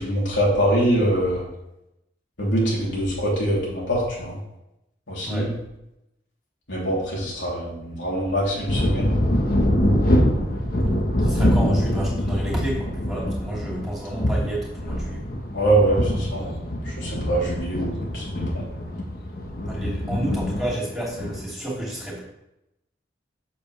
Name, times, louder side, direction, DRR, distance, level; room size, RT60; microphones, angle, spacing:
voice 1, 0.0-1.4 2.4-4.3 5.1-5.5 6.7-9.1 11.4-11.5 15.5-16.0 16.3-16.6 17.0-17.9 18.1-18.6, right 1 dB, 80° left, -5 dB, 3.3 m, -23 dB
voice 2, 5.2-5.6 11.2-15.2 19.6-22.2, right 1 dB, ahead, -6 dB, 2.9 m, -30 dB
sound 1, 8.7-21.4, equal, 50° left, 1.2 m, -24 dB
8.0 x 7.0 x 3.4 m, 0.87 s
head